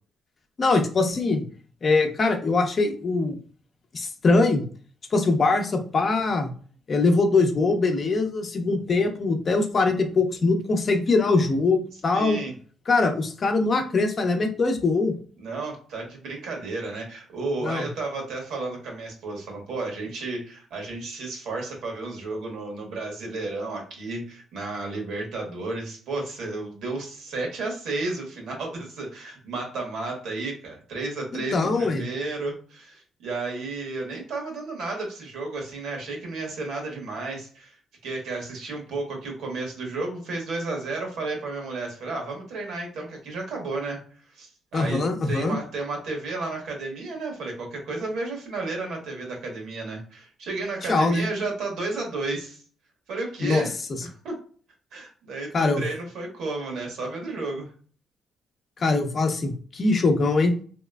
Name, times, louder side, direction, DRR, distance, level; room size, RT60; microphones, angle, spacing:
voice 1, 0.6-1.4 1.8-3.4 3.9-4.6 5.1-6.5 6.9-12.4 12.9-15.1 17.6-17.9 31.3-32.0 44.7-45.6 50.9-51.2 53.4-53.6 55.5-55.8 58.8-60.5, left 3 dB, 45° left, 5 dB, 0.7 m, -22 dB
voice 2, 12.1-12.5 15.4-37.7 38.0-44.0 44.3-45.0 45.3-52.6 53.1-53.7 54.0-54.3 54.9-57.7, right 3 dB, 80° right, 1 dB, 1.3 m, -32 dB
3.2 x 2.9 x 2.3 m, 0.43 s
cardioid pair, 90°, 0 cm